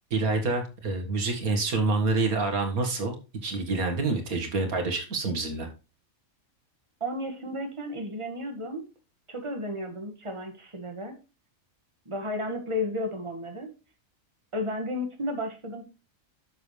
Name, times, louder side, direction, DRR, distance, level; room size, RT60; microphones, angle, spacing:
voice 1, 0.1-5.7, right 3 dB, 85° right, 5 dB, 2.2 m, -27 dB
voice 2, 7.0-8.8 9.3-11.2 12.1-13.7 14.5-15.8, left 1 dB, 20° right, 4 dB, 1.8 m, -33 dB
10.0 x 7.1 x 3.2 m, 0.30 s
omnidirectional pair, 1.5 m